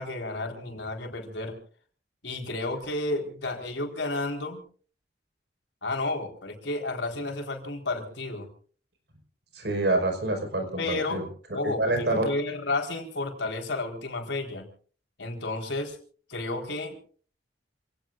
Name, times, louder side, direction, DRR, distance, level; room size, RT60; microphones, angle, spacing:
voice 1, 0.0-1.6 2.2-4.6 5.8-8.5 10.8-11.2 11.5-14.7 15.2-16.0 16.3-17.0, left 2 dB, 90° left, 3 dB, 4.5 m, -32 dB
voice 2, 9.5-11.2 11.8-12.3, right 2 dB, 70° right, 5 dB, 5.3 m, -26 dB
28.0 x 18.0 x 2.6 m, 0.43 s
head